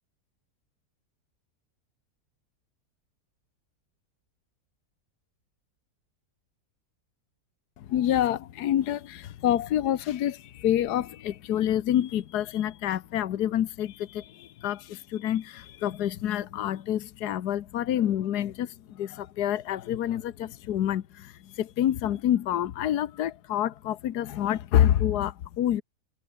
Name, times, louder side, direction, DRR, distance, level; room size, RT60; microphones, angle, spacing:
voice 1, 7.8-25.8, left 11 dB, 80° left, 1.5 m, -27 dB
omnidirectional pair, 1.7 m